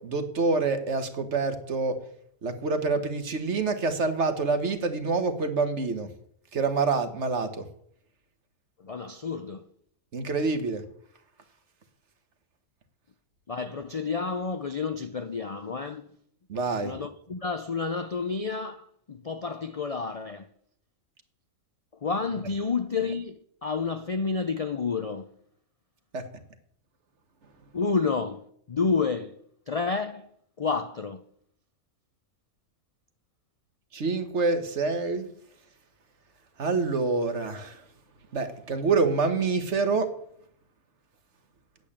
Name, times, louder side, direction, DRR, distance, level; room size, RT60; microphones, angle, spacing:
voice 1, 0.0-2.0 2.4-6.1 6.5-7.6 10.1-10.8 16.5-16.9 26.1-26.3 33.9-35.3 36.6-37.8 38.3-40.1, right 4 dB, 55° right, 1.5 m, -26 dB
voice 2, 8.8-9.7 13.5-16.1 16.8-20.5 22.0-25.3 27.7-29.4 29.7-30.3 30.6-31.3, left 4 dB, 45° left, 0.4 m, -30 dB
8.6 x 8.2 x 8.7 m
omnidirectional pair, 1.4 m